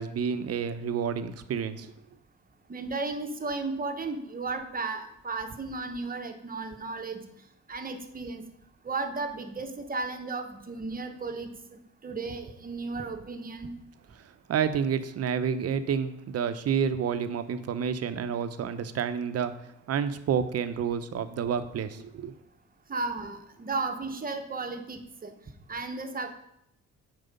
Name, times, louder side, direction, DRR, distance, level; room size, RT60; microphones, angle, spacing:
voice 1, 0.0-1.9 14.5-19.5 19.9-22.3, right 7 dB, 55° right, 11 dB, 0.7 m, -29 dB
voice 2, 2.7-7.2 7.7-8.4 8.8-13.7 22.9-25.3 25.7-26.3, right 3 dB, 30° right, 6 dB, 1.0 m, -34 dB
7.8 x 4.8 x 5.3 m, 0.78 s
cardioid pair, 90°, 30 cm